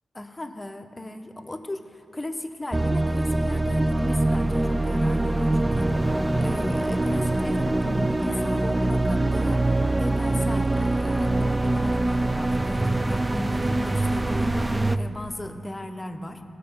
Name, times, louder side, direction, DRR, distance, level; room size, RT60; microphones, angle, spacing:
voice 1, 0.1-6.1 6.4-9.7 10.0-14.5 14.9-16.4, left 1 dB, 20° left, 6 dB, 0.7 m, -36 dB
sound 1, 2.7-15.0, right 2 dB, 20° right, 0.4 m, -24 dB
17.0 x 6.7 x 5.2 m, 2.5 s
wide cardioid pair, 85°, 0 cm